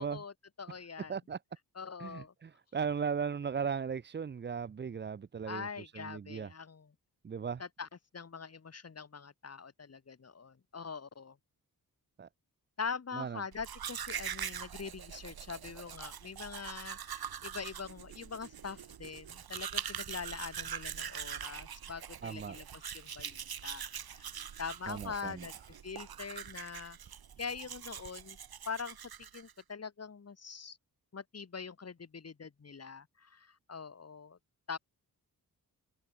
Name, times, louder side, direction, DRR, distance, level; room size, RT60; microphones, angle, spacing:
voice 1, 0.0-1.2 1.7-2.3 5.5-6.9 7.6-7.9 8.1-11.4 12.8-25.5 25.8-27.0 27.4-28.4 28.7-30.8 31.1-34.4 34.7-34.8, left 5 dB, 40° left, 5.9 m, -43 dB
voice 2, 2.0-6.5 7.2-7.6 12.2-12.3 13.1-13.4 22.2-22.6 24.9-25.5, right 6 dB, 30° right, 0.6 m, -37 dB
Domestic sounds home sounds, 13.5-29.6, right 8 dB, 75° right, 3.7 m, -43 dB
wide cardioid pair, 150°, 37 cm